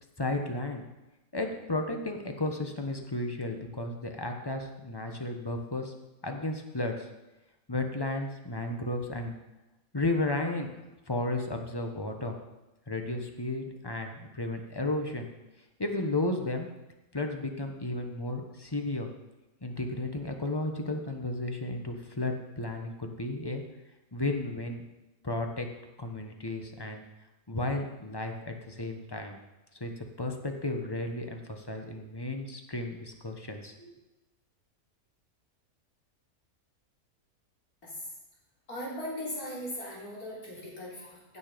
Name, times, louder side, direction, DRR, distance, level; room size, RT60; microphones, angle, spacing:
voice 1, 0.2-0.8 1.3-5.9 6.2-7.1 7.7-9.3 9.9-10.7 11.1-12.3 12.9-15.3 15.8-16.7 17.1-19.1 19.6-23.6 24.1-24.8 25.2-25.7 26.0-27.0 27.5-29.4 29.8-33.9, left 2 dB, 20° left, 4 dB, 1.1 m, -33 dB
voice 2, 38.7-41.4, equal, 90° left, -5 dB, 4.3 m, -39 dB
15.0 x 7.0 x 5.2 m, 1.0 s
omnidirectional pair, 1.5 m